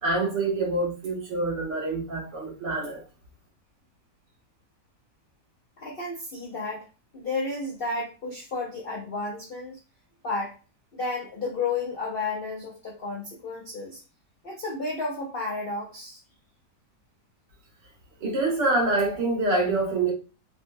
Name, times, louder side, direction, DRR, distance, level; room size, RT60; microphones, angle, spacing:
voice 1, 0.0-3.0 18.2-20.1, right 2 dB, 90° right, 1.9 m, -26 dB
voice 2, 5.8-6.8 7.1-9.8 10.2-10.5 10.9-14.0 14.4-16.2, left 3 dB, 60° left, 0.5 m, -32 dB
3.8 x 2.3 x 2.6 m
omnidirectional pair, 1.8 m